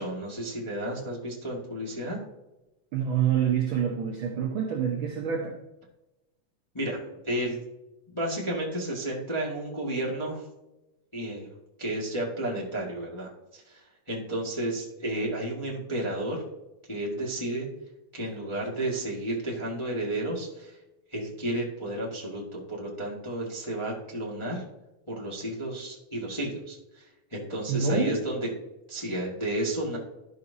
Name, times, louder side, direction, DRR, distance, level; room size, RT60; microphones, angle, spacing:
voice 1, 0.0-2.2 6.7-7.6 8.1-10.4 11.1-11.5 11.8-16.4 16.9-17.7 18.1-20.8 21.1-24.6 25.1-28.4 28.9-30.0, right 1 dB, 15° left, -4 dB, 0.9 m, -32 dB
voice 2, 2.9-5.6 27.7-28.2, right 7 dB, 70° right, 1 dB, 1.2 m, -26 dB
12.5 x 6.1 x 2.7 m, 0.98 s
omnidirectional pair, 3.6 m